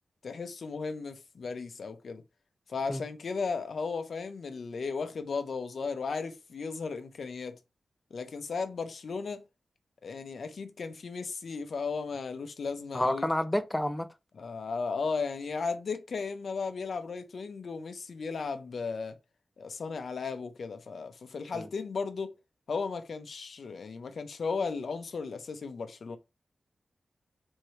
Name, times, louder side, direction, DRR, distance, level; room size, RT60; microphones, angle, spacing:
voice 1, 0.2-2.2 2.7-7.6 8.1-9.4 10.0-13.3 14.4-19.2 19.6-22.4 22.7-26.2, left 4 dB, 75° left, 0.7 m, -35 dB
voice 2, 12.9-14.1 21.5-21.7, left 1 dB, 15° left, 0.6 m, -29 dB
3.6 x 3.2 x 4.3 m
cardioid pair, 65°, 0 cm